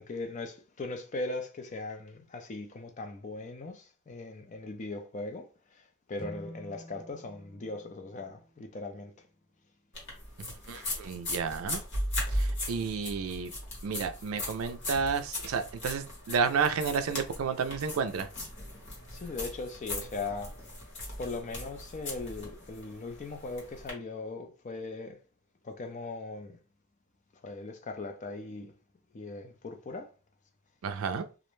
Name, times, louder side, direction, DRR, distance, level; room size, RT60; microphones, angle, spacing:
voice 1, 0.0-9.3 19.1-20.6 21.2-25.2 25.6-26.6 27.4-28.7 29.1-30.1, left 3 dB, 35° left, 0.4 m, -39 dB
sound 1, 6.1-9.4, left 1 dB, 80° left, 1.3 m, -49 dB
sound 2, 9.9-23.9, left 1 dB, 55° left, 1.1 m, -38 dB
voice 2, 10.4-11.8 12.3-13.5 13.8-18.3 30.8-31.3, right 5 dB, 75° right, 0.4 m, -31 dB
2.4 x 2.1 x 3.0 m
head